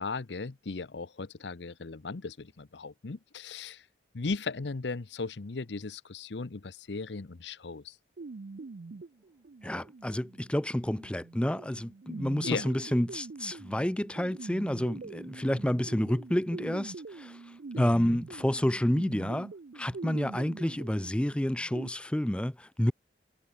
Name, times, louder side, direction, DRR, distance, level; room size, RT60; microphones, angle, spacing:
voice 1, 0.0-3.9 4.1-8.0 12.4-12.7 17.7-18.2, left 4 dB, 75° left, 0.8 m, -37 dB
sound 1, 8.2-21.9, right 3 dB, 60° right, 0.5 m, -44 dB
voice 2, 9.6-17.4 17.8-19.5 19.8-22.9, left 1 dB, 5° left, 0.4 m, -29 dB
head